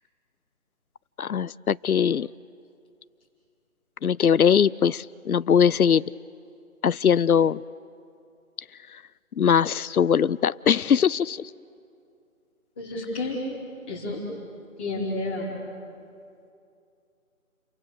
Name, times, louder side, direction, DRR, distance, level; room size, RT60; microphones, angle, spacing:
voice 1, 1.2-2.3 4.0-6.0 6.8-7.6 8.9-9.0 9.4-11.5, left 7 dB, 90° left, 19 dB, 0.6 m, -21 dB
voice 2, 12.8-13.4 13.9-14.2 14.8-15.5, left 2 dB, 10° left, -6 dB, 2.1 m, -30 dB
30.0 x 24.0 x 6.9 m, 2.5 s
figure-of-eight pair, 170°, 42 cm